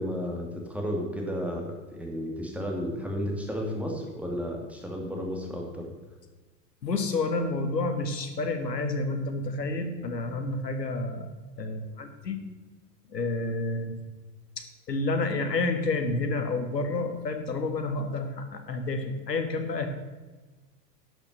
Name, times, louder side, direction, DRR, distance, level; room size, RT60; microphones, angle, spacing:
voice 1, 0.0-5.9, equal, 5° right, 0 dB, 2.5 m, -33 dB
voice 2, 6.8-11.3 11.6-12.4 13.1-14.0 14.6-19.9, left 3 dB, 85° left, 7 dB, 1.7 m, -29 dB
11.5 x 6.8 x 6.7 m, 1.3 s
figure-of-eight pair, 95°, 48 cm